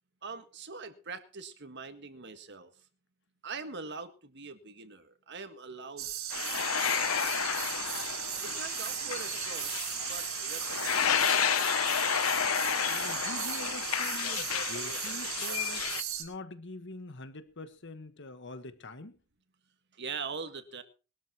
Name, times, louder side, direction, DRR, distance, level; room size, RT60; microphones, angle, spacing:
voice 1, 0.2-2.7 3.4-7.4 8.4-11.5 19.9-20.8, right 4 dB, 55° right, 9 dB, 1.7 m, -43 dB
sound 1, 6.0-16.2, right 11 dB, 80° right, 3.0 m, -36 dB
sound 2, 6.3-16.0, left 8 dB, 80° left, 0.8 m, -31 dB
voice 2, 12.9-19.2, left 2 dB, 60° left, 11 dB, 1.4 m, -45 dB
21.0 x 13.0 x 3.0 m, 0.33 s
head